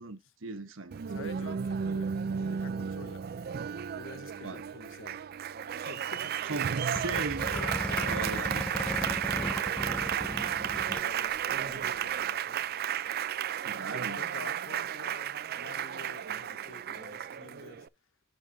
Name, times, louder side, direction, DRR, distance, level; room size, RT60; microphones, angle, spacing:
voice 1, 0.0-1.0 4.4-4.7 6.4-7.5 8.1-8.7 13.6-14.2, right 3 dB, 85° right, 1.1 m, -37 dB
Applause, 0.9-17.9, right 8 dB, 50° right, 0.4 m, -33 dB
voice 2, 1.1-2.1 2.4-3.3 3.9-5.2 5.8-6.5 7.5-12.6 13.9-17.9, left 5 dB, 85° left, 0.6 m, -48 dB
sound 1, 6.9-11.1 11.4-11.5 11.7-12.0, equal, 5° left, 0.5 m, -36 dB
9.1 x 6.5 x 2.7 m
head